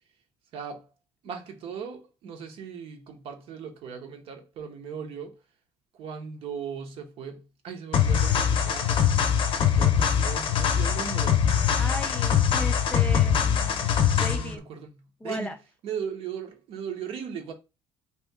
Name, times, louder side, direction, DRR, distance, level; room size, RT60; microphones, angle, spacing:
voice 1, 0.5-0.9 1.2-5.3 6.0-9.1 9.7-11.5 14.3-15.5 15.8-17.5, right 7 dB, 70° right, 0.8 m, -38 dB
sound 1, 7.9-14.5, left 8 dB, 60° left, 0.6 m, -23 dB
voice 2, 11.8-14.6 15.2-15.6, left 1 dB, 10° left, 0.4 m, -37 dB
2.9 x 2.5 x 3.5 m
supercardioid pair, 75°, 10 cm